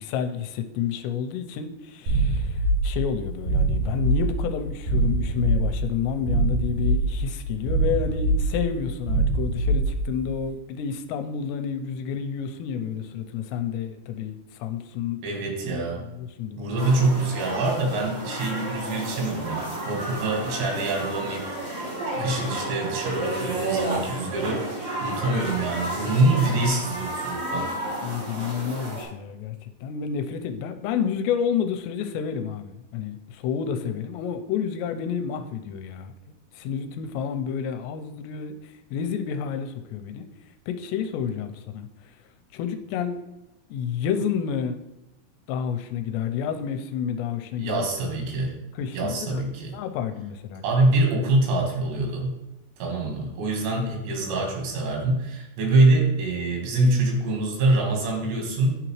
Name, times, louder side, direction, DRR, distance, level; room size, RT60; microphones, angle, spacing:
voice 1, 0.0-15.2 15.6-16.8 22.2-22.4 28.0-36.1 36.5-40.3 40.7-41.9 42.5-43.2 43.7-44.8 45.5-47.9 48.7-50.6, left 7 dB, 90° left, 8 dB, 2.8 m, -30 dB
sound 1, 2.1-10.3, right 2 dB, 55° right, 3.3 m, -24 dB
voice 2, 15.2-16.0 16.6-21.5 22.2-24.7 25.0-27.7 47.6-48.5 48.9-49.7 50.6-52.3 52.8-58.8, right 2 dB, 85° right, 1 dB, 3.7 m, -24 dB
sound 2, 16.8-29.0, right 1 dB, 35° right, 3.2 m, -32 dB
11.0 x 3.9 x 3.1 m, 0.93 s
omnidirectional pair, 4.9 m